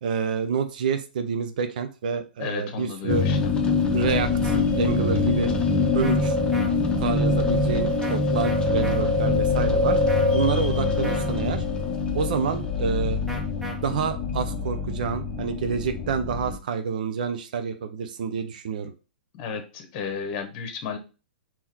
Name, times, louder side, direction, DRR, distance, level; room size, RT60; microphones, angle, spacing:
voice 1, 0.0-3.2 3.9-5.5 5.9-6.4 7.0-11.6 12.1-13.2 13.8-18.9, right 6 dB, 65° right, 8 dB, 0.6 m, -28 dB
voice 2, 2.4-3.5 19.3-21.0, left 6 dB, 45° left, 6 dB, 1.0 m, -33 dB
sound 1, 3.1-16.6, left 3 dB, 20° left, 0.9 m, -24 dB
sound 2, 4.4-4.6 6.0-6.2 6.5-6.7 8.0-8.2 8.4-9.0 10.1-10.4 11.0-11.3 13.3-13.7, equal, ahead, 1.2 m, -36 dB
3.7 x 3.0 x 4.3 m, 0.33 s
figure-of-eight pair, 105°, 5 cm